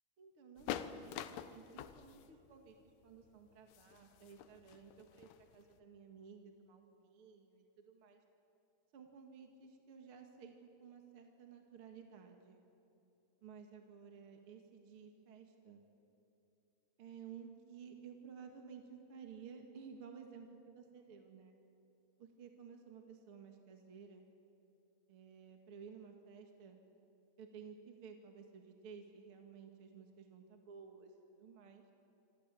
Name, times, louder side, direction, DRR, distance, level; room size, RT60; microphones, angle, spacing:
voice 1, 0.2-2.8 3.0-8.2 8.9-12.6 13.4-15.8 17.0-21.6 22.2-24.2 25.1-26.8 27.4-31.8, right 6 dB, 45° right, 3 dB, 2.1 m, -55 dB
sound 1, 0.6-5.8, left 10 dB, 85° left, 2.9 m, -46 dB
26.5 x 26.0 x 8.3 m, 2.8 s
omnidirectional pair, 4.4 m